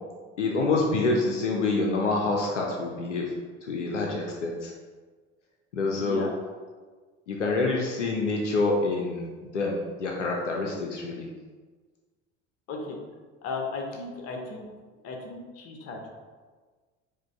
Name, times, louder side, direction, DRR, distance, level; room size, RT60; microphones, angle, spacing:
voice 1, 0.4-3.3 3.6-4.7 5.7-6.2 7.3-11.3, left 3 dB, 80° left, -1 dB, 0.6 m, -27 dB
voice 2, 6.0-6.3 12.7-13.0 13.4-14.7 15.0-16.1, left 3 dB, 40° left, 1 dB, 0.9 m, -35 dB
4.9 x 2.3 x 4.5 m, 1.4 s
figure-of-eight pair, 65°, 36 cm